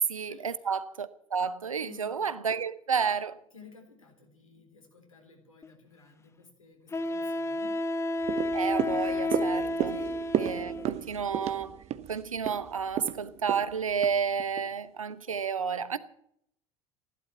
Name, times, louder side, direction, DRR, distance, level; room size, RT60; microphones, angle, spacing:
voice 1, 0.1-3.4 8.5-9.9 10.4-11.7 12.1-16.0, right 6 dB, 80° right, 0.9 m, -31 dB
voice 2, 1.6-2.4 3.5-7.8 8.2-8.3 9.9-11.2, left 4 dB, 80° left, 3.9 m, -52 dB
Wind instrument woodwind instrument, 5.6-5.7 6.9-11.0, left 2 dB, 15° left, 0.8 m, -31 dB
sound 1, 8.2-14.7 15.1-15.2, right 11 dB, 40° right, 0.9 m, -34 dB
15.0 x 11.5 x 7.3 m
figure-of-eight pair, 70°, 17 cm